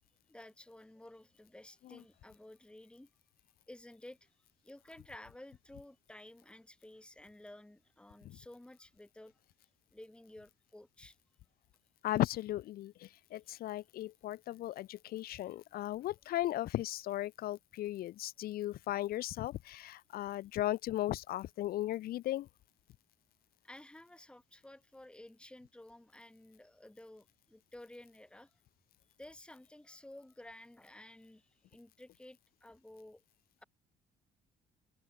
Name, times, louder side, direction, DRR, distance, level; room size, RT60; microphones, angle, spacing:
voice 1, 0.3-3.1 3.7-4.3 4.6-9.4 9.9-11.2 23.6-28.5 29.2-33.2, left 1 dB, 5° left, 1.7 m, -54 dB
voice 2, 12.0-22.5, left 14 dB, 60° left, 0.6 m, -36 dB
cardioid pair, 110°, 17 cm